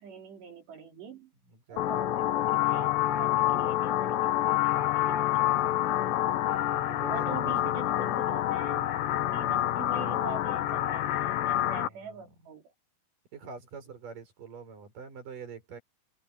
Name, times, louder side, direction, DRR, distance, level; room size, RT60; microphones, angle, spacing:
voice 1, 0.0-1.3 1.7-6.4 7.1-8.9 9.3-12.6, right 5 dB, 85° right, 6.3 m, -44 dB
voice 2, 1.5-2.1 6.9-7.8 9.3-9.6 11.8-12.2 13.3-15.8, right 5 dB, 50° right, 7.3 m, -46 dB
sound 1, 1.8-11.9, left 13 dB, 85° left, 3.4 m, -27 dB
omnidirectional pair, 4.8 m